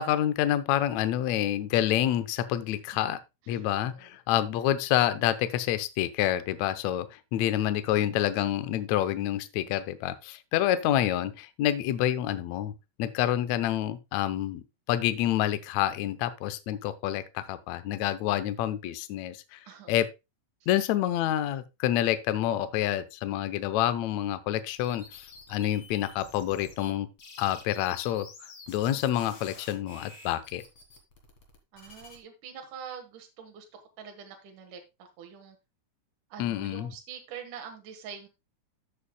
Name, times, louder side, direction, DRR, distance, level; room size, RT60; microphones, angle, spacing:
voice 1, 0.0-3.2 3.5-12.7 13.0-14.6 14.9-19.6 19.9-20.1 20.7-27.1 27.4-30.6 36.4-36.9, left 12 dB, 80° left, 1.6 m, -28 dB
voice 2, 3.5-4.1 19.7-19.9 31.7-35.6 36.3-38.3, right 7 dB, 65° right, 2.9 m, -45 dB
sound 1, 24.7-26.9 27.2-32.2, left 4 dB, 45° left, 2.3 m, -50 dB
13.5 x 7.1 x 2.2 m
omnidirectional pair, 4.2 m